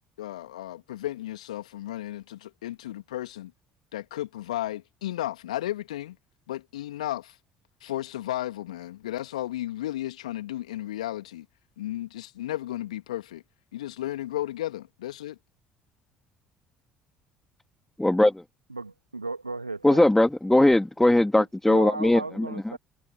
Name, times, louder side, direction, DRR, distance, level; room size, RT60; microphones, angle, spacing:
voice 1, 0.2-3.5 3.9-6.2 6.5-7.4 7.8-11.5 11.8-13.4 13.7-15.4, left 14 dB, 75° left, 2.5 m, -34 dB
voice 2, 18.0-18.4 19.8-22.5, left 1 dB, 5° left, 2.3 m, -20 dB
voice 3, 18.7-20.1 21.4-22.8, right 3 dB, 90° right, 1.8 m, -36 dB
figure-of-eight pair, 55°, 4 cm